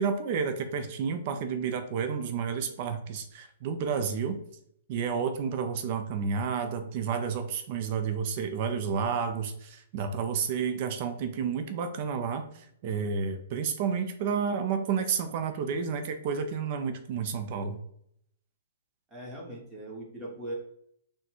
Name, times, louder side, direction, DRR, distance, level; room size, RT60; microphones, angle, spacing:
voice 1, 0.0-4.4 4.9-17.8, right 6 dB, 45° right, 7 dB, 0.5 m, -31 dB
voice 2, 19.1-20.5, right 1 dB, 15° right, -3 dB, 1.3 m, -40 dB
4.0 x 2.2 x 4.4 m, 0.70 s
hypercardioid pair, 145°, 0 cm